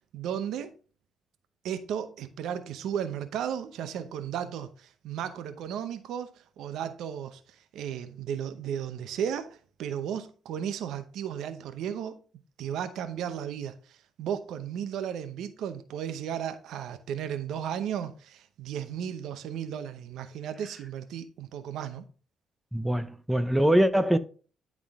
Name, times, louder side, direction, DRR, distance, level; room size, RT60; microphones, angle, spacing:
voice 1, 0.1-0.7 1.6-7.4 7.7-12.2 12.6-22.1, right 9 dB, 80° right, 0.8 m, -34 dB
voice 2, 22.7-24.2, equal, 5° right, 0.6 m, -23 dB
11.0 x 3.7 x 3.6 m
cardioid pair, 90°, 0 cm